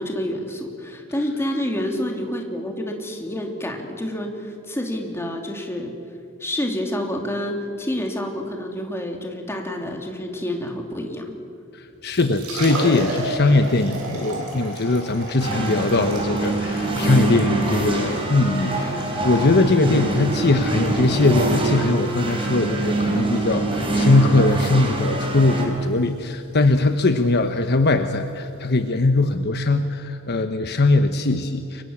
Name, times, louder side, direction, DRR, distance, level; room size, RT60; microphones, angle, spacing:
voice 1, 0.0-5.9 6.4-11.3, left 1 dB, 10° left, 2 dB, 3.0 m, -28 dB
voice 2, 11.7-31.8, left 2 dB, 50° left, 8 dB, 1.0 m, -20 dB
Liquid, 11.9-29.3, right 1 dB, 80° right, 7.9 m, -35 dB
sound 1, 15.4-25.7, right 2 dB, 25° right, 4.6 m, -24 dB
29.5 x 24.0 x 7.3 m, 2.6 s
head